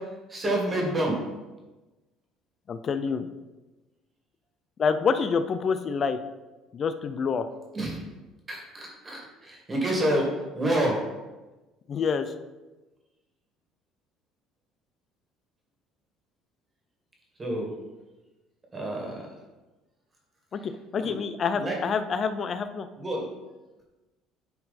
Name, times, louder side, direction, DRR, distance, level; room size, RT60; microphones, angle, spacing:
voice 1, 0.3-1.2 7.7-8.0 8.5-10.3 10.5-11.0 17.4-17.7 18.7-19.1 21.0-21.1 21.6-21.8 23.0-23.3, right 1 dB, 20° right, -1 dB, 2.1 m, -28 dB
voice 2, 2.7-3.3 4.8-6.2 6.7-7.5 11.9-12.3 20.5-22.9, left 5 dB, 35° left, 10 dB, 0.5 m, -27 dB
10.5 x 4.5 x 4.2 m, 1.1 s
cardioid pair, 135°, 0 cm